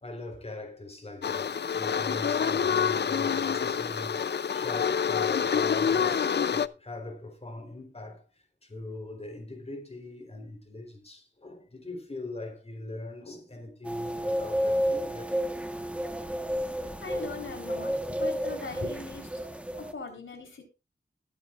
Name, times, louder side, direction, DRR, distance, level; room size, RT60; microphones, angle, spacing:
voice 1, 0.0-8.3 8.6-15.4 17.1-17.4 18.0-18.2 18.8-19.0, left 2 dB, 30° left, 3.9 m, -41 dB
sound 1, 1.2-6.7, left 7 dB, 60° left, 0.6 m, -27 dB
sound 2, 13.8-19.9, equal, 5° right, 1.3 m, -31 dB
voice 2, 17.0-19.2 19.8-20.6, left 4 dB, 85° left, 4.1 m, -40 dB
21.5 x 8.4 x 2.5 m
wide cardioid pair, 115°, 20 cm